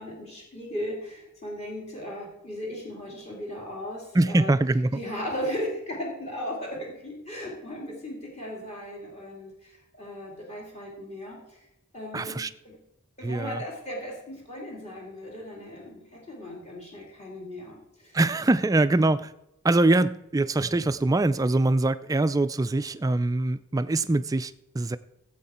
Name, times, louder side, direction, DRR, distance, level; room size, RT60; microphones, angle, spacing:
voice 1, 0.0-4.5 4.9-11.6 11.9-12.8 13.2-18.1, equal, 30° left, 2.4 m, -37 dB
voice 2, 4.1-5.0 12.1-12.5 13.2-13.6 18.1-19.3 19.6-25.0, right 2 dB, 15° right, 0.3 m, -23 dB
16.0 x 8.0 x 4.3 m
head